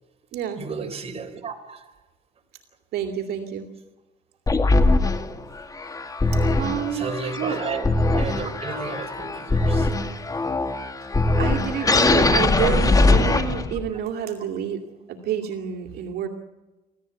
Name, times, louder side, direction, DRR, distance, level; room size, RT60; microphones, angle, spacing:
voice 1, 0.5-1.9 6.9-7.9 8.1-10.0 12.6-12.7 13.9-14.0, right 5 dB, 35° right, 3.6 m, -33 dB
voice 2, 2.9-3.7 4.8-4.9 6.6-7.6 11.4-14.8 15.1-16.3, right 9 dB, 70° right, 2.5 m, -28 dB
sound 1, 4.5-13.9, left 2 dB, 20° left, 2.0 m, -21 dB
26.0 x 16.0 x 8.3 m
cardioid pair, 110°, 17 cm